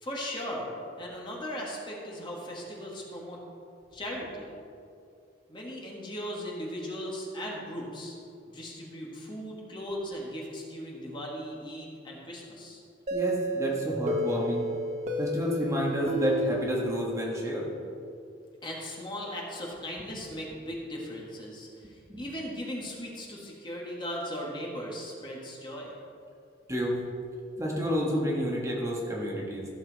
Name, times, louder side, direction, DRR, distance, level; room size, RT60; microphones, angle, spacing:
voice 1, 0.0-0.7 1.0-3.4 3.9-4.5 5.5-8.1 8.5-12.8 18.6-25.9, equal, 25° left, -3 dB, 1.8 m, -38 dB
voice 2, 13.1-14.7 15.2-17.7 22.1-22.2 26.7-27.0 27.6-29.7, equal, 15° right, -3 dB, 1.5 m, -29 dB
sound 1, 13.1-17.7, equal, 40° right, 1.0 m, -33 dB
14.5 x 7.2 x 4.1 m, 2.5 s
head